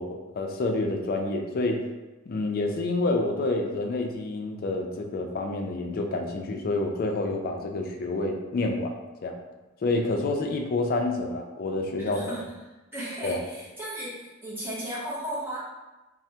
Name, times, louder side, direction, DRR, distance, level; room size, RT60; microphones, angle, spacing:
voice 1, 0.0-1.8 2.3-8.9 9.2-9.3 9.8-12.4 13.2-13.4, left 2 dB, 45° left, 3 dB, 0.3 m, -28 dB
voice 2, 12.0-12.4 12.9-15.6, right 1 dB, 10° right, -8 dB, 0.8 m, -35 dB
3.3 x 2.1 x 2.7 m, 1.1 s
head